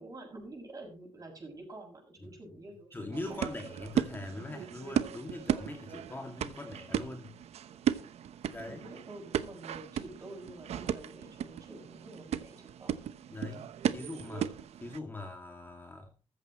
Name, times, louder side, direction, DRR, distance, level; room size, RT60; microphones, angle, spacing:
voice 1, 0.0-3.4 8.7-12.9, right 2 dB, 35° right, 2 dB, 6.4 m, -48 dB
voice 2, 2.2-2.6 2.9-7.3 8.0-8.1 8.4-8.8 13.3-13.7 13.9-14.5 14.8-16.1, left 2 dB, 20° left, 3 dB, 2.2 m, -42 dB
sound 1, 3.1-15.0, right 9 dB, 75° right, 0.9 m, -36 dB
14.5 x 14.0 x 3.1 m, 0.33 s
wide cardioid pair, 140°, 11 cm